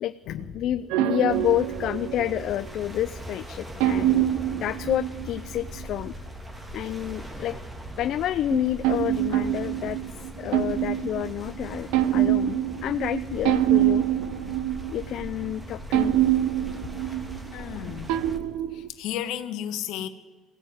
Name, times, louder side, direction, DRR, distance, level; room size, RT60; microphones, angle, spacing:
voice 1, 0.0-6.1 6.7-7.6 8.0-10.0 10.4-14.0 14.9-16.2 17.1-17.2, left 12 dB, 60° left, 11 dB, 0.6 m, -29 dB
sound 1, 0.9-2.7 3.8-5.8 8.5-15.5 15.9-18.9, right 13 dB, 90° right, 1.0 m, -25 dB
sound 2, 1.3-18.4, equal, 15° right, 2.8 m, -40 dB
voice 2, 17.5-18.2 18.7-20.1, left 11 dB, 80° left, 9 dB, 1.7 m, -34 dB
22.0 x 16.5 x 9.5 m, 1.3 s
cardioid pair, 125°, 0 cm